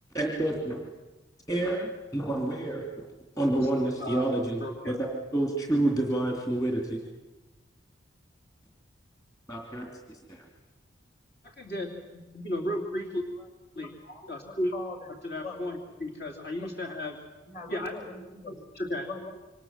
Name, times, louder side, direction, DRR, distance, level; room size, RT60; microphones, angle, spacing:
voice 1, 0.1-0.8 1.5-2.8 3.4-4.6 4.9-7.0 9.5-10.4, right 1 dB, 20° left, 0 dB, 3.2 m, -28 dB
voice 2, 4.6-5.0 11.4-13.3 13.7-13.9 14.3-14.7 15.2-17.2 17.7-17.9 18.5-19.1, left 1 dB, 55° left, 1 dB, 3.0 m, -34 dB
voice 3, 13.8-15.1 15.4-16.0 16.6-16.7 17.4-18.6 19.0-19.3, left 3 dB, 35° left, 4 dB, 6.2 m, -42 dB
28.0 x 25.5 x 7.6 m, 1.1 s
head